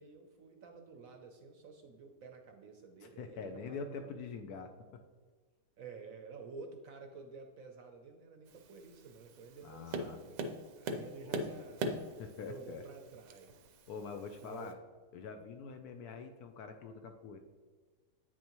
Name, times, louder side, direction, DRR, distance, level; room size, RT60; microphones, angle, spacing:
voice 1, 0.0-4.1 5.8-11.8 12.4-13.5 14.4-14.8, right 4 dB, 65° right, 4 dB, 0.9 m, -51 dB
voice 2, 3.0-5.0 9.6-10.2 11.2-11.4 12.2-12.8 13.9-14.8 15.1-17.4, left 5 dB, 70° left, 7 dB, 1.0 m, -45 dB
Tap, 8.5-14.7, right 2 dB, 85° right, 1.3 m, -43 dB
8.5 x 6.3 x 2.9 m, 1.5 s
omnidirectional pair, 1.9 m